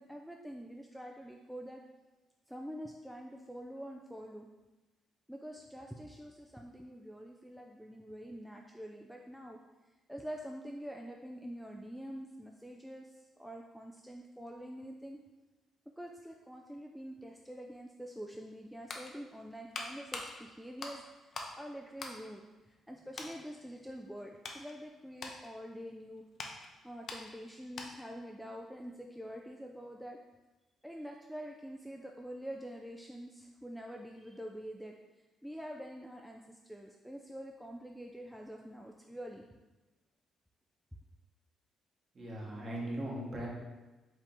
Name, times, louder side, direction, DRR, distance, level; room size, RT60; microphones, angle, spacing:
voice 1, 0.0-1.8 2.5-4.5 5.3-9.6 10.1-15.2 16.0-26.3 26.8-30.2 30.8-35.0 35.4-39.4, equal, ahead, 1 dB, 0.3 m, -46 dB
sound 1, 18.5-21.6 21.9-22.9 23.1-23.4 23.9-28.2 28.5-28.6, left 3 dB, 55° left, 0.6 m, -45 dB
voice 2, 42.1-43.5, right 1 dB, 35° right, -3 dB, 1.2 m, -39 dB
4.7 x 2.7 x 3.6 m, 1.2 s
cardioid pair, 90°, 0 cm